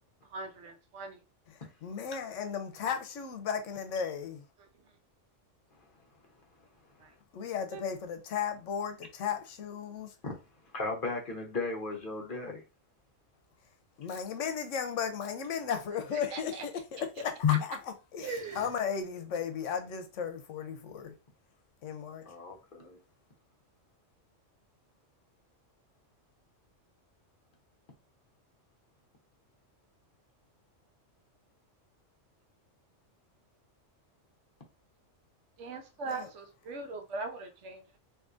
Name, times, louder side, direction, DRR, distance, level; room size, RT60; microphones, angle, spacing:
voice 1, 0.3-1.2 7.0-7.1 7.7-7.8 16.1-16.6 18.2-18.7 35.6-37.8, right 3 dB, 70° right, 1.0 m, -40 dB
voice 2, 1.5-4.4 7.3-10.1 14.0-17.3 17.6-17.8 18.1-21.1 21.8-22.3 36.1-36.3, left 7 dB, 80° left, 1.0 m, -35 dB
voice 3, 10.7-12.6 17.4-17.6 22.2-23.0, left 6 dB, 50° left, 0.9 m, -33 dB
3.6 x 2.7 x 2.5 m
omnidirectional pair, 1.3 m